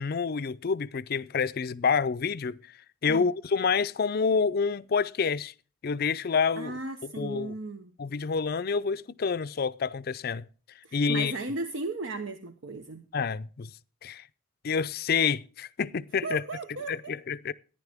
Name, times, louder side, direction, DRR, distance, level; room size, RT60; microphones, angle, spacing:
voice 1, 0.0-2.6 3.0-5.5 5.8-6.8 7.2-7.5 8.0-10.4 10.9-11.3 13.1-13.7 14.0-14.2 14.6-16.4 16.9-17.5, left 5 dB, 50° left, 0.5 m, -28 dB
voice 2, 6.6-7.9 10.8-13.1 16.2-17.2, right 3 dB, 75° right, 0.9 m, -36 dB
14.5 x 10.5 x 3.5 m
head